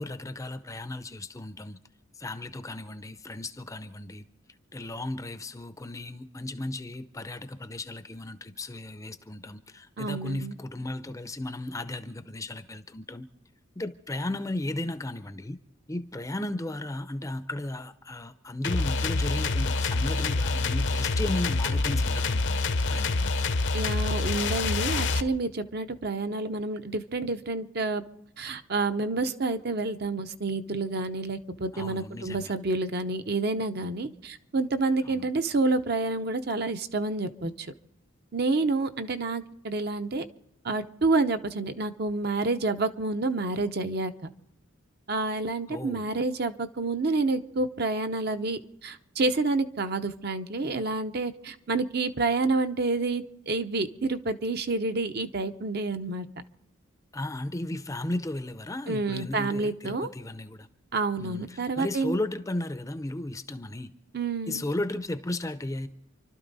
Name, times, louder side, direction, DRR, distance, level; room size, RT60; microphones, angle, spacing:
voice 1, 0.0-1.8 2.2-4.3 4.7-13.3 13.8-15.6 15.9-23.4 31.7-32.5 35.0-35.3 45.7-46.1 57.1-60.7 61.2-64.0 64.5-65.9, left 1 dB, 15° left, 0.6 m, -35 dB
voice 2, 10.0-10.6 23.7-28.0 28.4-37.7 38.3-40.2 40.6-44.1 45.1-56.3 58.9-60.1 60.9-62.1 64.1-64.6, right 3 dB, 50° right, 0.7 m, -29 dB
sound 1, 18.6-25.2, left 3 dB, 55° left, 0.7 m, -26 dB
29.0 x 12.5 x 4.0 m
head